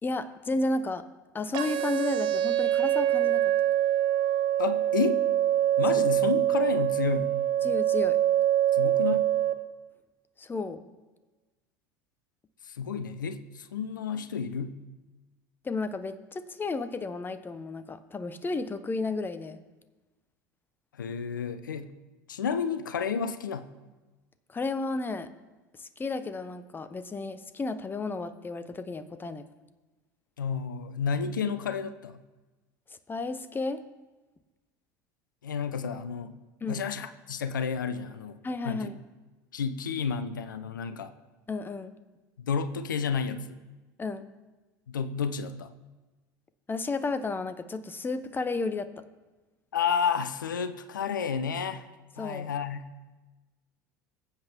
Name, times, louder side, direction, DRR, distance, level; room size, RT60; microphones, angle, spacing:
voice 1, 0.0-1.0 1.3-3.4 5.9-6.0 7.6-8.2 10.4-10.9 15.6-19.6 24.5-25.3 25.7-29.5 33.1-33.8 36.6-36.9 38.4-39.0 41.5-41.9 44.0-44.3 46.7-48.9 52.2-52.5, left 3 dB, 20° left, 12 dB, 0.9 m, -32 dB
sound 1, 1.5-9.5, right 12 dB, 50° right, 1.3 m, -25 dB
voice 2, 4.6-5.2 5.8-7.4 8.7-9.3 12.6-14.7 20.9-21.9 22.3-23.7 30.4-32.2 35.4-36.3 36.7-38.4 38.6-38.9 39.5-41.1 42.4-43.6 44.9-45.7 49.7-51.9 52.2-52.9, left 6 dB, 80° left, 11 dB, 0.7 m, -31 dB
21.0 x 8.1 x 3.6 m, 1.2 s
figure-of-eight pair, 70°, 10 cm